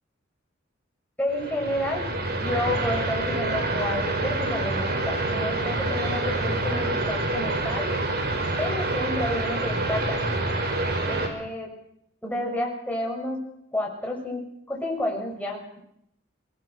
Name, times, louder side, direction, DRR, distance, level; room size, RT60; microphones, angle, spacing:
voice 1, 1.2-2.0 2.4-7.9 8.6-10.4 11.1-11.7 12.2-13.4 13.7-14.4 14.7-15.8, left 1 dB, 10° left, -1 dB, 6.8 m, -30 dB
sound 1, 1.3-11.3, right 2 dB, 55° right, 4.6 m, -27 dB
25.0 x 20.0 x 6.4 m, 0.75 s
head